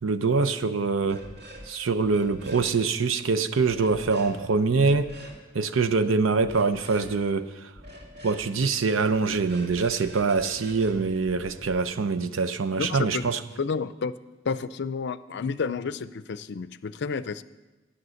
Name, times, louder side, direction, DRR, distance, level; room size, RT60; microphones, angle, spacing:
voice 1, 0.0-1.2 1.6-5.1 5.5-7.7 8.2-13.4, right 4 dB, 80° right, 12 dB, 0.7 m, -24 dB
sound 1, 1.0-1.7 2.0-2.7 3.7-4.3 4.7-5.4 6.4-7.1 7.7-8.5 9.1-11.8, equal, 55° right, 2.3 m, -45 dB
voice 2, 12.8-14.1 14.4-17.4, left 5 dB, 60° left, 15 dB, 0.5 m, -31 dB
12.5 x 9.9 x 6.4 m, 1.2 s
head